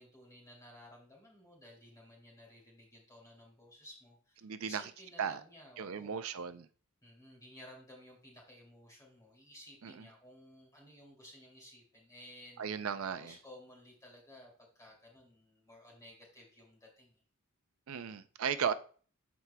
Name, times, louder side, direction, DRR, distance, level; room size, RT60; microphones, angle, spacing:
voice 1, 0.0-6.3 7.0-12.6 13.1-17.2, left 1 dB, 15° left, 2.7 m, -56 dB
voice 2, 4.4-4.8 5.2-5.4 5.8-6.7 9.8-9.9 12.6-13.3 17.9-18.7, right 7 dB, 75° right, 0.5 m, -36 dB
14.0 x 4.7 x 2.2 m
head